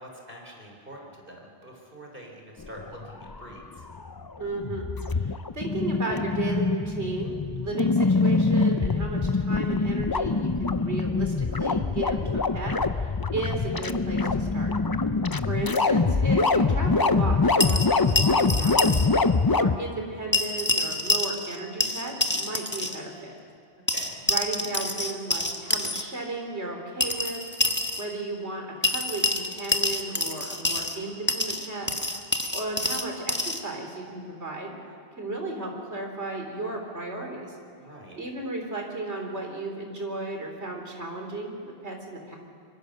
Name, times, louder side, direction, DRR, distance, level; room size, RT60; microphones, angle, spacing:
voice 1, 0.0-3.8 15.2-15.5 23.9-24.2 37.8-38.2, right 1 dB, 50° right, 0 dB, 4.1 m, -45 dB
sound 1, 2.6-19.8, left 3 dB, 25° left, 0.5 m, -24 dB
voice 2, 4.4-14.7 15.5-19.0 19.5-23.3 24.2-27.4 28.0-32.2 32.5-34.7 35.2-37.6 38.2-42.4, right 2 dB, 75° right, 2 dB, 4.0 m, -34 dB
sound 2, 17.6-19.1 19.3-19.4 20.3-21.6 21.8-23.0 23.9-26.0 27.0-28.0 28.8-31.0 31.3-33.6, left 1 dB, 10° left, 1.3 m, -27 dB
25.0 x 24.5 x 6.6 m, 2.3 s
omnidirectional pair, 1.1 m